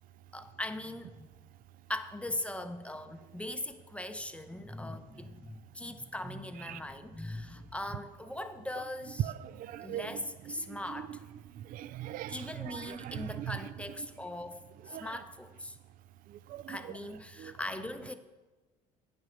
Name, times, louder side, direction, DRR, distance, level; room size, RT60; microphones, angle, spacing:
voice 1, 0.3-1.3 1.9-9.3 9.8-11.2 12.3-15.8 16.7-18.1, left 1 dB, 5° left, 8 dB, 0.6 m, -40 dB
voice 2, 9.2-10.2 10.6-10.8 11.5-13.5 14.9-15.2 16.3-16.8 17.4-17.5, right 12 dB, 55° right, 17 dB, 0.4 m, -39 dB
8.9 x 6.5 x 6.3 m, 1.2 s
supercardioid pair, 90°, 17 cm